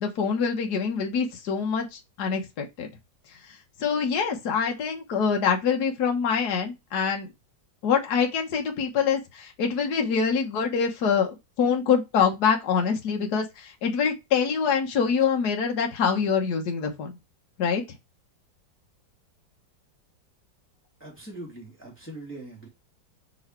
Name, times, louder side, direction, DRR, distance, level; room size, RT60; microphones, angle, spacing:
voice 1, 0.0-2.9 3.8-7.3 7.8-17.1 17.6-17.8, left 6 dB, 60° left, 1.6 m, -25 dB
voice 2, 21.0-22.7, right 1 dB, 5° left, 2.5 m, -41 dB
5.2 x 4.7 x 4.5 m
omnidirectional pair, 2.0 m